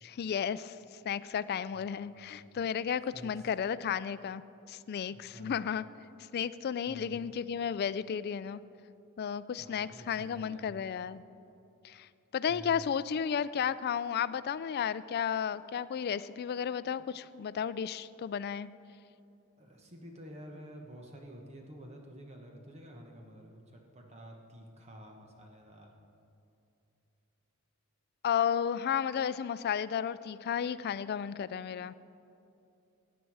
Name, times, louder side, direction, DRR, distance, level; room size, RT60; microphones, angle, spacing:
voice 1, 0.0-0.8 1.0-4.4 4.7-5.8 6.3-8.6 9.2-11.2 11.8-18.7 28.2-31.9, left 8 dB, 45° left, 16 dB, 0.3 m, -33 dB
voice 2, 1.7-2.5 3.1-3.5 5.1-5.6 6.9-7.2 9.6-10.8 12.5-12.8 17.0-17.1 19.6-25.9, equal, 30° right, 2 dB, 1.1 m, -50 dB
16.0 x 9.1 x 4.7 m, 2.7 s
head